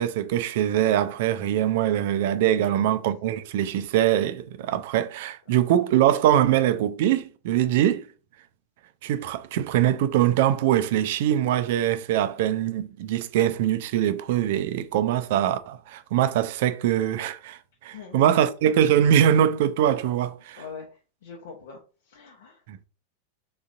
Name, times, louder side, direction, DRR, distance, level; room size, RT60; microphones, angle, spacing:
voice 1, 0.0-8.1 9.0-20.6 22.7-22.8, right 11 dB, 50° right, 0.4 m, -23 dB
voice 2, 21.2-21.8 22.1-22.6, left 6 dB, 60° left, 0.7 m, -42 dB
3.9 x 3.6 x 2.4 m
figure-of-eight pair, 90°, 0 cm